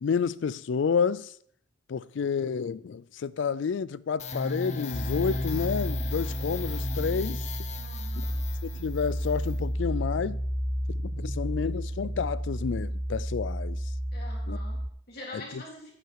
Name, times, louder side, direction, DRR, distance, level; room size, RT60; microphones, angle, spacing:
voice 1, 0.0-1.3 1.9-7.4 8.2-8.3 8.6-10.4 10.9-13.8 14.5-14.6 15.3-15.6, left 6 dB, 70° left, 0.4 m, -30 dB
sound 1, 4.2-12.6, left 2 dB, 40° left, 0.9 m, -36 dB
sound 2, 4.9-14.9, equal, 10° right, 0.6 m, -32 dB
voice 2, 7.8-8.4 14.1-15.9, left 1 dB, 55° left, 3.6 m, -45 dB
9.5 x 9.3 x 4.7 m
head